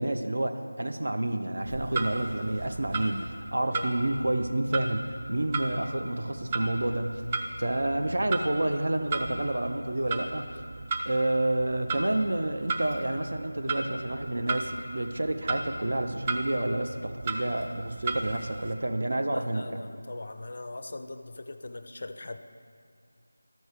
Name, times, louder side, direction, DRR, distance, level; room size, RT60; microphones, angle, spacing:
voice 1, 0.0-7.2 7.6-10.5 11.0-19.8, right 1 dB, 60° right, 6 dB, 0.6 m, -29 dB
Clock, 1.6-18.7, right 3 dB, 20° right, 0.4 m, -36 dB
voice 2, 19.3-22.4, left 2 dB, 45° left, 9 dB, 0.4 m, -40 dB
12.5 x 6.2 x 3.5 m, 2.3 s
figure-of-eight pair, 170°, 0 cm